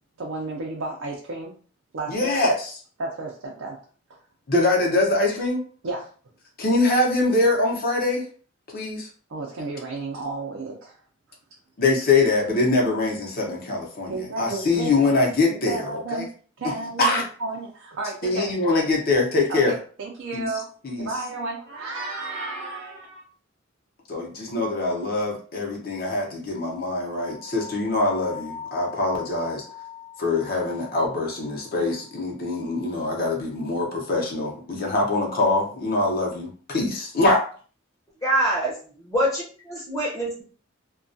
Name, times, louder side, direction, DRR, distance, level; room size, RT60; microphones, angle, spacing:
voice 1, 0.2-1.5 1.9-2.3 3.0-3.8 5.8-6.1 9.3-11.0 14.1-15.1 15.5-16.3 16.6-18.5 19.5-20.7 21.0-23.2, right 3 dB, 75° right, -2 dB, 0.5 m, -32 dB
voice 2, 2.1-2.7 4.5-5.6 6.6-8.3 8.7-9.1 11.8-16.3 16.6-16.7 17.0-17.3 18.2-19.7 20.3-20.5 20.8-21.1 24.1-29.6 30.2-37.4, left 2 dB, 50° left, 0 dB, 0.7 m, -23 dB
sound 1, 27.1-32.2, left 6 dB, 20° right, 0.6 m, -41 dB
voice 3, 38.2-40.4, right 1 dB, 15° left, -4 dB, 0.7 m, -25 dB
2.2 x 2.2 x 2.6 m, 0.42 s
head